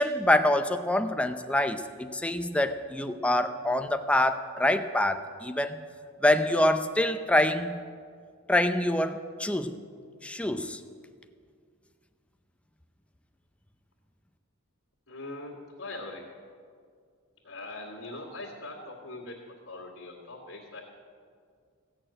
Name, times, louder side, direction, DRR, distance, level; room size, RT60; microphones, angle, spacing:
voice 1, 0.0-5.8 6.2-7.7 8.5-9.8 10.2-10.8, left 1 dB, 5° left, 8 dB, 0.5 m, -25 dB
voice 2, 15.1-16.3 17.4-19.4 19.6-20.8, left 2 dB, 80° left, -7 dB, 2.1 m, -41 dB
16.0 x 6.5 x 8.9 m, 2.1 s
head